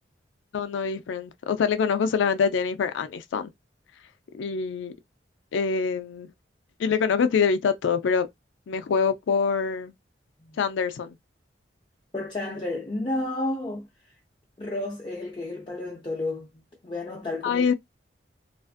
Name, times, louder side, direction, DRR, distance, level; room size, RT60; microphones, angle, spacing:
voice 1, 0.5-3.5 4.3-4.9 5.5-6.3 6.8-8.3 8.7-9.9 10.6-11.1 17.4-17.7, left 6 dB, 85° left, 0.4 m, -25 dB
voice 2, 12.1-13.9 14.6-16.5 16.8-17.7, left 2 dB, 25° left, 0.5 m, -31 dB
2.4 x 2.4 x 2.4 m
head